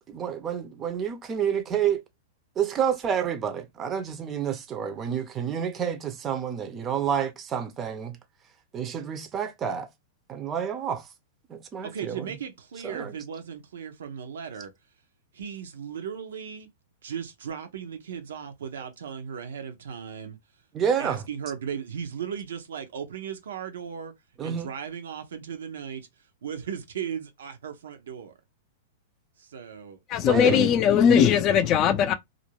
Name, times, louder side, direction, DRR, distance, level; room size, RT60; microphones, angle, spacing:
voice 1, 0.1-2.0 2.6-8.2 8.7-9.9 10.3-11.1 11.5-12.3 12.8-13.1 20.7-21.2 24.4-24.7 30.3-30.6, right 8 dB, 25° right, 0.5 m, -29 dB
voice 2, 11.8-14.7 15.3-16.7 17.0-20.4 21.0-24.1 24.4-26.1 26.4-28.3 29.4-30.7, right 7 dB, 80° right, 0.7 m, -37 dB
voice 3, 30.1-32.1, left 8 dB, 35° left, 0.4 m, -19 dB
2.5 x 2.1 x 2.9 m
hypercardioid pair, 125°, 0 cm